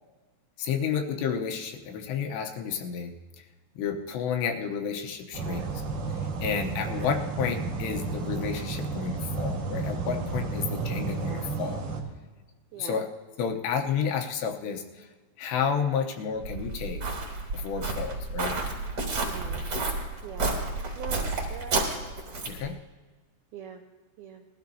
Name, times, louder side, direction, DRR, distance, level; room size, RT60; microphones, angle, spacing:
voice 1, 0.6-3.1 3.8-5.8 6.4-11.8 12.8-13.1 13.4-15.1 15.4-17.0 17.5-18.6 22.5-22.8, left 7 dB, 80° left, 4 dB, 2.9 m, -31 dB
sound 1, 5.3-12.0, right 4 dB, 55° right, 2.5 m, -32 dB
voice 2, 5.4-5.7 6.9-7.1 11.2-11.5 12.7-13.0 19.2-19.7 20.2-20.5 21.0-21.9 23.5-23.8 24.2-24.5, right 9 dB, 85° right, 2 dB, 2.2 m, -42 dB
Walk footsteps, 16.4-22.7, right 3 dB, 35° right, 3.4 m, -31 dB
20.5 x 13.0 x 2.7 m, 1.3 s
omnidirectional pair, 5.3 m